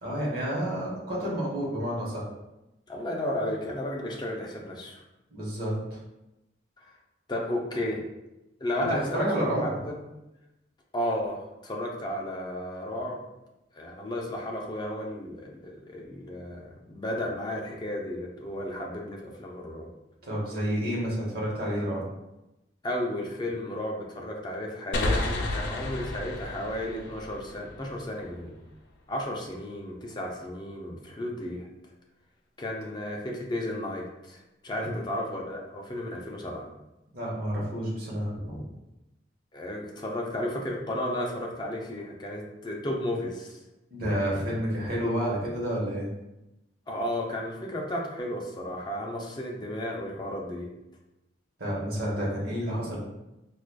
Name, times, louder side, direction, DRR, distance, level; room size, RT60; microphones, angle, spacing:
voice 1, 0.0-2.2 5.3-6.0 8.7-8.9 9.1-9.7 20.2-22.0 34.8-34.9 37.1-38.6 43.9-46.1 51.6-53.0, equal, 55° right, -5 dB, 1.0 m, -30 dB
voice 2, 2.9-5.0 6.8-6.9 7.3-8.0 8.6-10.0 10.9-13.2 13.7-19.9 22.8-28.5 29.1-31.7 32.6-36.7 39.5-43.6 46.9-50.7, left 1 dB, 25° left, -1 dB, 0.5 m, -33 dB
sound 1, 24.9-28.4, left 2 dB, 75° left, 0.5 m, -32 dB
4.6 x 2.4 x 2.2 m, 0.95 s
head